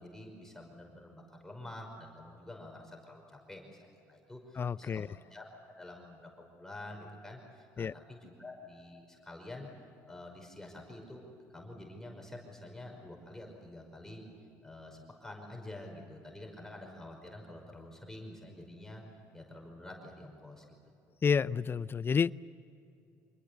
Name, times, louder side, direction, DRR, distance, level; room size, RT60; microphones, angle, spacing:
voice 1, 0.0-5.5 5.8-9.7 10.1-14.2 14.6-19.0 19.3-20.6, left 1 dB, 5° left, 5.6 m, -48 dB
voice 2, 4.6-5.1 7.8-7.9 21.2-22.3, left 6 dB, 35° left, 0.6 m, -29 dB
26.5 x 20.0 x 8.3 m
supercardioid pair, 85°, 7 cm